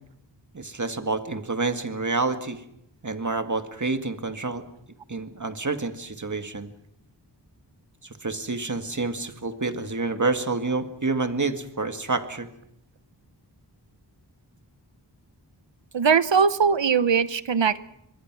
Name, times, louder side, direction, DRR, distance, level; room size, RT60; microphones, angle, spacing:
voice 1, 0.5-2.6 3.0-4.6 5.1-6.7 8.0-12.5, right 3 dB, 45° right, 8 dB, 1.9 m, -28 dB
voice 2, 15.9-17.8, right 6 dB, 90° right, 15 dB, 0.9 m, -20 dB
25.5 x 21.0 x 6.1 m, 0.78 s
wide cardioid pair, 60°, 43 cm